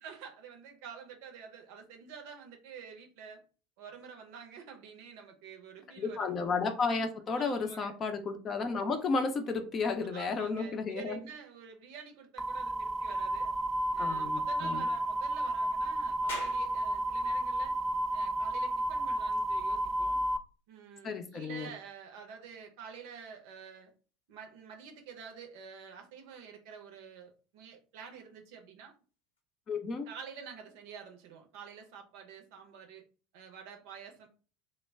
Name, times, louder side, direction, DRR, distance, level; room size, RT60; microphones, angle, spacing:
voice 1, 0.0-3.4 3.8-6.3 7.4-7.9 10.1-13.5 13.9-17.7 18.1-20.2 20.7-23.9 24.3-28.9 30.1-33.0 33.3-34.3, right 6 dB, 60° right, 3 dB, 0.6 m, -48 dB
voice 2, 6.0-11.2 14.0-14.8 21.0-21.7 29.7-30.1, left 4 dB, 35° left, 6 dB, 0.6 m, -33 dB
sound 1, 12.4-20.4, right 1 dB, 10° right, 0.3 m, -32 dB
sound 2, 16.3-29.4, left 3 dB, 75° left, 0.9 m, -55 dB
2.1 x 2.1 x 3.5 m, 0.37 s
figure-of-eight pair, 70°, 0 cm